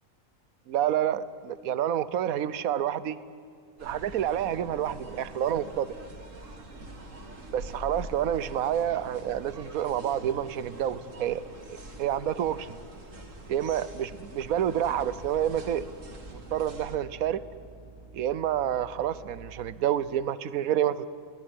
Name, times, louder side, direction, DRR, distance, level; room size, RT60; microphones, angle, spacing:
voice 1, 0.7-3.2 3.8-5.9 7.5-11.4 11.7-12.8 13.5-15.8 16.5-17.4 18.1-21.1, right 10 dB, 75° right, 16 dB, 1.3 m, -28 dB
sound 1, 3.8-17.0, right 2 dB, 60° right, 2.8 m, -44 dB
sound 2, 14.5-19.4, right 4 dB, 15° right, 3.7 m, -50 dB
23.5 x 18.5 x 9.9 m, 2.4 s
omnidirectional pair, 1.5 m